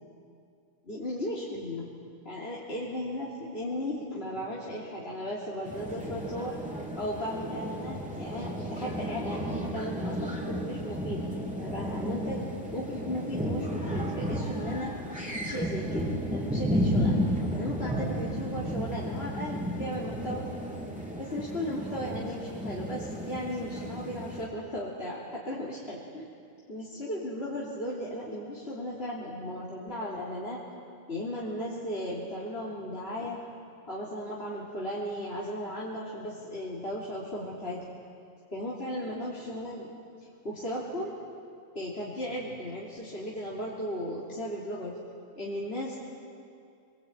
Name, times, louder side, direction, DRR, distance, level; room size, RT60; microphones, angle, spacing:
voice 1, 0.9-1.9 2.2-6.6 7.0-11.3 11.6-12.5 12.7-15.0 15.4-17.2 17.5-20.5 21.2-26.2 26.7-30.6 31.1-33.4 33.9-37.8 38.5-39.9 40.4-41.2 41.7-45.0 45.4-46.0, equal, 55° left, -7 dB, 3.5 m, -36 dB
sound 1, 5.6-24.5, equal, 5° right, 3.5 m, -33 dB
24.5 x 24.0 x 9.0 m, 2.4 s
omnidirectional pair, 1.3 m